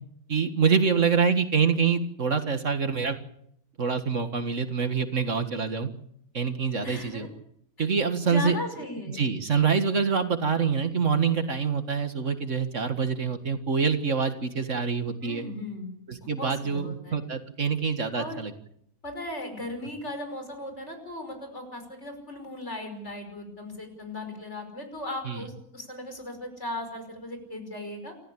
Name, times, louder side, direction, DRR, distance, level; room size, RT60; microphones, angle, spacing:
voice 1, 0.3-3.2 3.8-5.9 6.3-7.3 7.8-8.6 9.1-15.4 16.1-18.5 25.3-25.4, right 5 dB, 60° right, 8 dB, 2.1 m, -26 dB
voice 2, 6.8-7.3 7.8-7.9 8.2-9.2 15.2-15.9 16.2-17.2 18.1-18.4 19.0-28.1, left 1 dB, 50° left, 6 dB, 5.9 m, -37 dB
28.5 x 14.5 x 8.6 m, 0.70 s
omnidirectional pair, 1.5 m